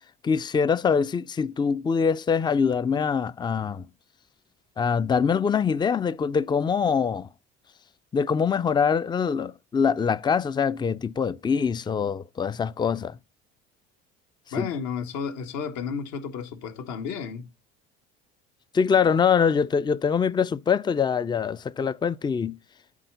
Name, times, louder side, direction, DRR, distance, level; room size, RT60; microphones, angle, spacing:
voice 1, 0.2-3.8 4.8-7.3 8.1-13.2 14.6-14.7 18.7-22.6, left 6 dB, 15° left, 0.4 m, -24 dB
voice 2, 14.5-17.5, left 6 dB, 65° left, 1.7 m, -32 dB
8.4 x 3.7 x 6.7 m
hypercardioid pair, 70°, 30 cm